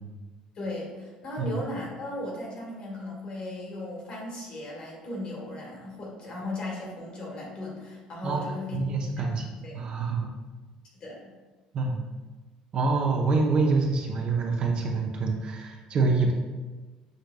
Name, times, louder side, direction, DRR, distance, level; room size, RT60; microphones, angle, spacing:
voice 1, 0.5-8.8 9.2-9.8 10.9-11.3, left 1 dB, 50° left, -2 dB, 1.5 m, -37 dB
voice 2, 8.7-9.4 9.7-10.3 11.7-12.0 12.7-16.3, right 3 dB, 45° right, 1 dB, 0.6 m, -26 dB
6.4 x 2.6 x 2.2 m, 1.3 s
cardioid pair, 110°, 2 cm